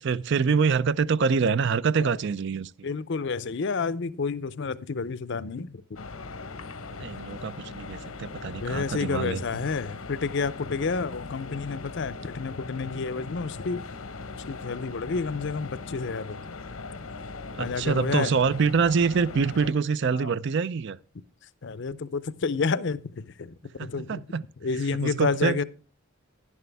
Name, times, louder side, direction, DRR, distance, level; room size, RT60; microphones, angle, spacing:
voice 1, 0.0-2.9 7.0-9.4 17.5-21.0 23.8-24.4 25.0-25.6, right 5 dB, 55° right, 0.4 m, -25 dB
voice 2, 2.8-5.8 8.6-13.8 14.5-16.4 17.6-18.4 20.1-20.3 21.6-24.2 24.6-25.6, left 4 dB, 55° left, 0.5 m, -30 dB
sound 1, 6.0-19.7, left 3 dB, 80° left, 0.9 m, -39 dB
11.0 x 11.0 x 3.4 m
head